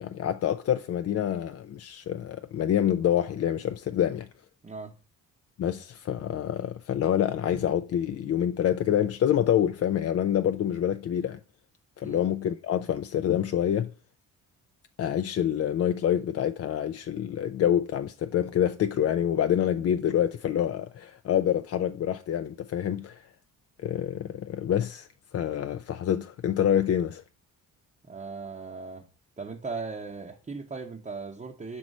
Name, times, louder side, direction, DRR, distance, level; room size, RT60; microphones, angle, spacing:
voice 1, 0.0-4.3 5.6-11.4 12.0-13.9 15.0-23.3 23.8-25.1 25.3-27.2, left 10 dB, 45° left, 0.4 m, -27 dB
voice 2, 28.0-29.1 29.4-31.8, right 4 dB, 20° right, 0.8 m, -38 dB
6.3 x 3.0 x 5.3 m
cardioid pair, 75°, 35 cm